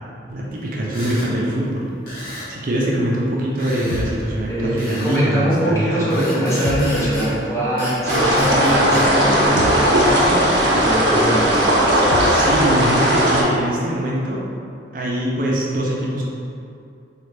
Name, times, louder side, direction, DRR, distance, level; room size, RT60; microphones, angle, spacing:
voice 1, 0.3-1.9 2.5-6.0 12.3-14.4 14.9-16.2, right 1 dB, 50° right, -4 dB, 0.5 m, -23 dB
sound 1, 0.9-1.3 2.1-2.5 3.6-4.1 4.8-5.2 6.1-7.4 7.8-9.1, equal, 50° left, 1.0 m, -31 dB
sound 2, 3.9-4.3 6.6-7.0 9.6-9.9 12.1-12.5, left 2 dB, 85° left, 0.4 m, -27 dB
voice 2, 4.5-11.7, equal, 15° left, -8 dB, 0.7 m, -22 dB
sound 3, 8.1-13.4, equal, 85° right, 0.7 m, -17 dB
4.1 x 2.4 x 3.3 m, 2.5 s
head